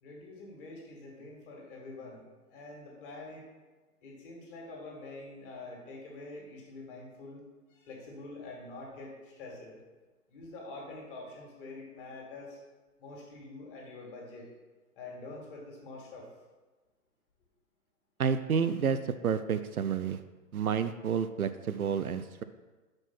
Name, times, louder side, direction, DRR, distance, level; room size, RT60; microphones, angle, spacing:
voice 1, 0.0-3.5 4.0-7.4 7.7-9.8 10.3-12.6 13.0-14.5 15.0-16.3, left 2 dB, 35° left, -2 dB, 2.1 m, -46 dB
voice 2, 18.2-19.0 19.2-20.2 20.5-22.4, right 7 dB, 65° right, 11 dB, 0.5 m, -30 dB
6.1 x 5.3 x 5.7 m, 1.2 s
figure-of-eight pair, 125°, 47 cm